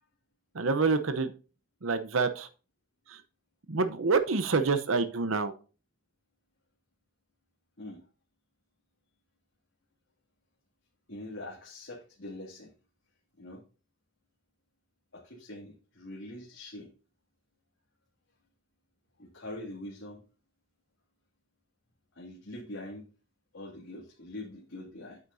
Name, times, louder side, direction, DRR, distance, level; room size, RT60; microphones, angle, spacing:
voice 1, 0.5-1.3 1.8-2.5 3.1-3.2 3.7-5.5, right 4 dB, 90° right, 10 dB, 0.8 m, -27 dB
voice 2, 11.1-12.7 13.4-13.6 15.1-16.9 19.2-20.2 22.1-23.0 23.5-25.2, left 1 dB, 85° left, -4 dB, 2.5 m, -43 dB
8.9 x 8.4 x 2.7 m, 0.34 s
head